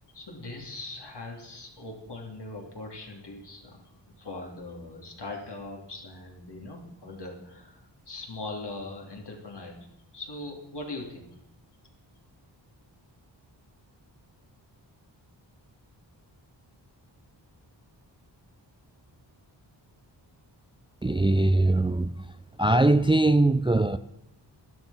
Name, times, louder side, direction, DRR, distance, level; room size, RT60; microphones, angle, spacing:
voice 1, 0.1-3.9 4.2-9.8 10.1-11.4, left 2 dB, 60° left, 3.3 m, -40 dB
voice 2, 21.0-22.1 22.6-24.0, right 2 dB, 10° right, 0.4 m, -21 dB
12.0 x 11.5 x 5.8 m
wide cardioid pair, 75°, 45 cm